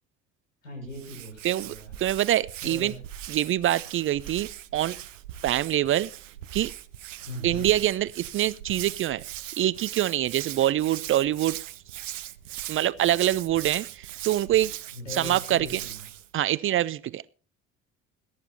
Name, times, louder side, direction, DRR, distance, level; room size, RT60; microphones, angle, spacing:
voice 1, 0.6-2.0 2.6-3.0 7.2-7.7 14.9-16.1, left 1 dB, 80° left, 6.6 m, -39 dB
Hands, 0.9-16.3, right 12 dB, 75° right, 0.8 m, -39 dB
voice 2, 1.4-2.9 3.3-5.0 5.4-6.1 6.5-6.7 7.4-9.2 9.6-11.6 12.7-14.7 15.1-15.7 16.3-17.3, right 13 dB, 35° right, 0.5 m, -25 dB
21.5 x 11.0 x 2.8 m
figure-of-eight pair, 60°, 38 cm